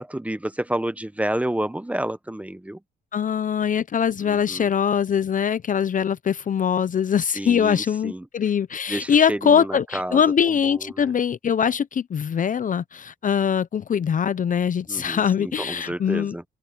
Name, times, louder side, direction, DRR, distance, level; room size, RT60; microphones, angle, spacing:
voice 1, 0.0-2.8 4.2-4.7 7.3-8.3 8.9-11.1 14.9-16.4, right 1 dB, 5° right, 1.0 m, -30 dB
voice 2, 3.1-16.3, left 7 dB, 40° left, 0.7 m, -22 dB
open air
cardioid pair, 90°, 20 cm